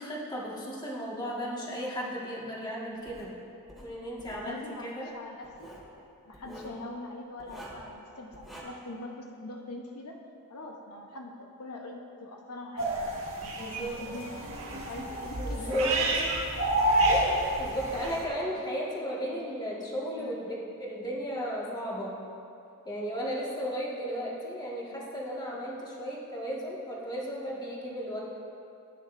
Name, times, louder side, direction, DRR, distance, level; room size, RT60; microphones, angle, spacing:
voice 1, 0.0-3.3 3.8-5.1 6.4-6.6 13.6-13.9 15.4-16.0 17.1-22.2 22.8-28.2, equal, 20° left, -5 dB, 1.8 m, -35 dB
Writing, 3.1-3.3 3.7-4.5 5.4-5.9 6.3-6.8 7.4-7.9 8.3-8.6, right 1 dB, ahead, 2.2 m, -47 dB
voice 2, 4.3-5.7 6.3-10.2 10.5-13.0 13.4-15.8 18.5-18.6 20.2-20.4, left 2 dB, 90° left, 1 dB, 1.0 m, -43 dB
sound 1, 12.8-18.2, right 1 dB, 65° right, 1.9 m, -29 dB
17.0 x 9.5 x 2.6 m, 2.6 s
head